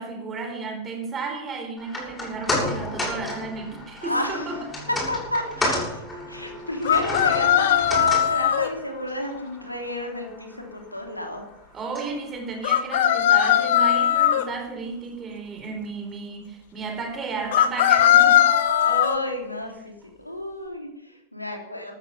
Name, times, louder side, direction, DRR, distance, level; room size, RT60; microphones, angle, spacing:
voice 1, 0.0-4.7 11.7-18.6, right 4 dB, 25° right, 4 dB, 4.4 m, -33 dB
sound 1, 1.8-14.2 14.5-14.6, left 1 dB, 15° left, 7.3 m, -33 dB
voice 2, 4.0-4.5 4.9-11.4 18.8-19.9 20.2-21.9, left 1 dB, 85° left, 2 dB, 3.2 m, -31 dB
sound 2, 6.8-8.7 12.6-14.4 17.5-19.2, left 10 dB, 55° left, 1.3 m, -19 dB
15.5 x 13.0 x 5.7 m, 0.85 s
figure-of-eight pair, 90°, 0 cm